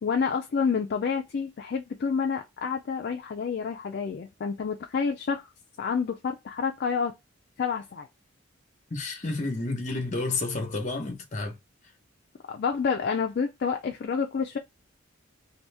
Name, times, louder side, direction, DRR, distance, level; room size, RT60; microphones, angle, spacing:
voice 1, 0.0-5.5 5.8-7.1 7.6-8.1 12.5-14.6, left 6 dB, 50° left, 0.3 m, -28 dB
voice 2, 8.9-11.6, left 3 dB, 35° left, 0.9 m, -30 dB
2.8 x 2.7 x 3.3 m
head